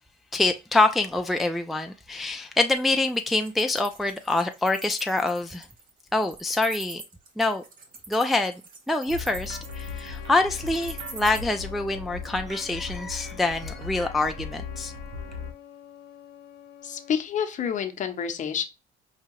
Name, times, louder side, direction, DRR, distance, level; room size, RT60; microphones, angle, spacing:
voice 1, 0.3-5.7 6.1-7.0 7.4-7.6 8.1-8.6 8.9-14.9, left 2 dB, ahead, 0.3 m, -25 dB
Wild animals, 2.8-11.4, right 5 dB, 55° right, 1.1 m, -42 dB
sound 1, 9.1-15.5, left 4 dB, 75° right, 0.9 m, -38 dB
Trumpet, 9.6-17.2, left 10 dB, 75° left, 0.8 m, -47 dB
voice 2, 16.8-18.7, left 7 dB, 45° left, 0.7 m, -28 dB
4.9 x 2.7 x 2.9 m
cardioid pair, 110°, 17 cm